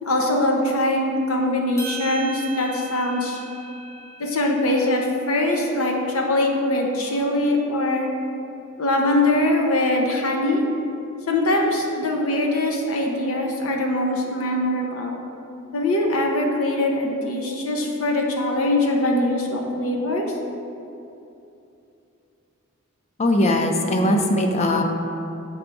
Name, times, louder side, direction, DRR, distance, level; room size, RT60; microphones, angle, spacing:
voice 1, 0.0-3.4 4.2-8.1 8.8-10.6 11.3-15.2 15.7-20.3, left 1 dB, 75° left, 1 dB, 0.9 m, -22 dB
sound 1, 1.8-6.2, right 5 dB, 15° left, 1.1 m, -39 dB
voice 2, 23.2-24.8, left 1 dB, 30° left, 4 dB, 0.5 m, -20 dB
7.1 x 3.5 x 5.2 m, 2.8 s
head